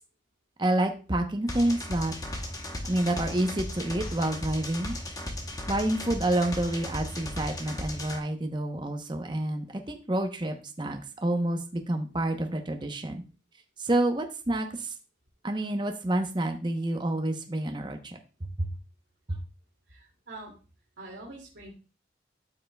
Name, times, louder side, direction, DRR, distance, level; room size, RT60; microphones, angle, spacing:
voice 1, 0.6-2.1 2.8-4.9 5.7-13.2 13.8-14.9 15.4-18.2 18.6-18.7 19.3-19.4, right 1 dB, 25° right, 4 dB, 0.8 m, -28 dB
sound 1, 1.5-8.2, left 1 dB, 20° left, 0.9 m, -36 dB
voice 2, 19.9-20.5 21.0-21.7, right 2 dB, 85° right, -4 dB, 2.3 m, -44 dB
13.0 x 5.6 x 2.2 m, 0.33 s
head